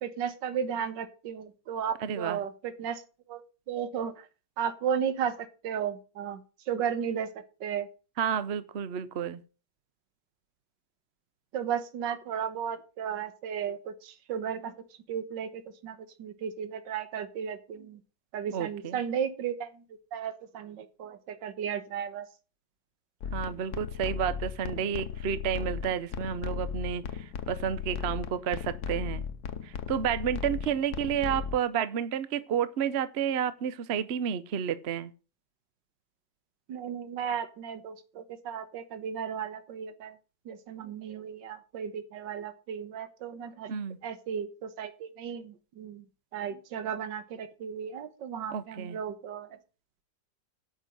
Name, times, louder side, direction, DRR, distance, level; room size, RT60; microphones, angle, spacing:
voice 1, 0.0-3.0 3.3-3.4 3.7-4.3 4.6-6.4 6.7-7.3 7.6-7.9 11.5-14.7 15.1-18.0 18.3-19.8 20.1-22.2 36.7-40.1 40.4-43.7 44.0-46.0 46.3-49.5, right 8 dB, 75° right, 1.8 m, -34 dB
voice 2, 2.0-2.4 8.2-9.4 18.5-19.0 23.3-27.0 27.5-29.2 29.6-35.1 43.7-44.0 48.5-49.0, right 8 dB, 55° right, 0.7 m, -31 dB
sound 1, 23.2-31.6, left 7 dB, 65° left, 1.3 m, -36 dB
9.1 x 6.4 x 7.8 m
omnidirectional pair, 2.0 m